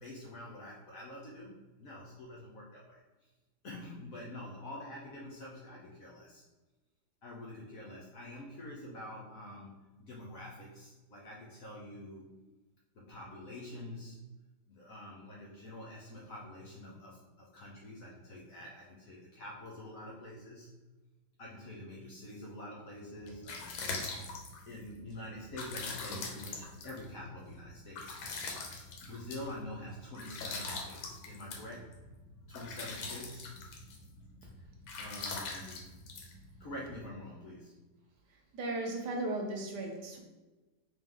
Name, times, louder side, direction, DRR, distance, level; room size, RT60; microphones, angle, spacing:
voice 1, 0.0-3.0 3.6-6.4 7.2-12.3 12.9-14.2 14.7-20.7 21.4-23.8 24.7-28.2 29.0-31.9 32.5-33.6 35.0-35.9 36.6-37.8, left 1 dB, 60° left, -4 dB, 0.9 m, -46 dB
sound 1, 23.0-37.0, left 3 dB, 85° left, 1.5 m, -43 dB
voice 2, 38.5-40.2, right 2 dB, 65° right, 1 dB, 1.2 m, -36 dB
3.6 x 3.0 x 3.6 m, 1.2 s
omnidirectional pair, 2.1 m